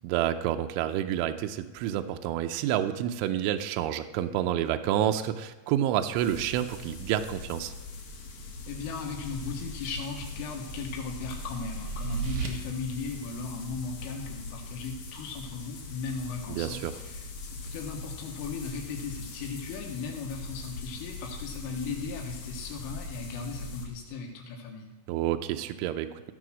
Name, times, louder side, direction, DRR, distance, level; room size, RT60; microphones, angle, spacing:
voice 1, 0.0-7.7 16.5-16.9 25.1-26.3, right 11 dB, 85° right, 7 dB, 3.0 m, -29 dB
sound 1, 6.1-23.9, left 3 dB, 60° left, 2.2 m, -41 dB
voice 2, 8.7-24.9, left 5 dB, 85° left, 2 dB, 4.0 m, -37 dB
sound 2, 9.7-12.5, right 5 dB, 70° right, 1.9 m, -36 dB
15.5 x 7.8 x 6.2 m, 1.2 s
omnidirectional pair, 5.6 m